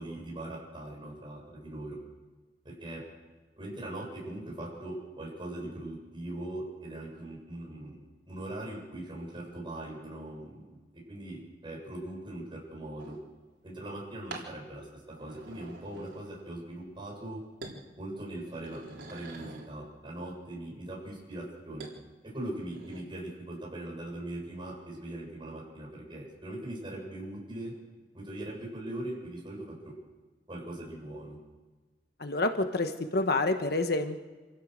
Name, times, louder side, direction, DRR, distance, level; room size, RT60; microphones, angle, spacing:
voice 1, 0.0-2.0 2.6-3.0 3.6-8.0 8.3-10.7 11.1-13.1 13.6-17.4 18.0-21.9 22.3-27.7 28.1-29.9 30.5-31.4, right 1 dB, 30° right, -2 dB, 7.9 m, -40 dB
sound 1, 13.0-13.3 14.3-14.5 15.1-16.5 16.9-17.3 17.6-17.8 18.3-19.7 21.8-22.0 22.5-23.0, right 2 dB, 90° right, 3.8 m, -46 dB
voice 2, 32.2-34.2, left 2 dB, 60° left, 7 dB, 1.3 m, -28 dB
26.5 x 16.0 x 6.6 m, 1.3 s
head